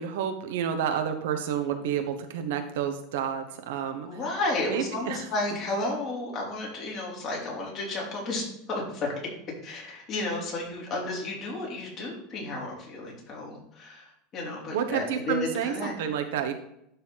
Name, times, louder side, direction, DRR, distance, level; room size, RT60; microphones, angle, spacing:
voice 1, 0.0-4.1 4.7-5.3 14.7-16.5, right 8 dB, 85° right, 7 dB, 1.2 m, -30 dB
voice 2, 4.0-9.2 9.6-15.9, left 2 dB, 35° left, -3 dB, 3.6 m, -32 dB
11.5 x 4.3 x 4.2 m, 0.76 s
supercardioid pair, 155°, 0 cm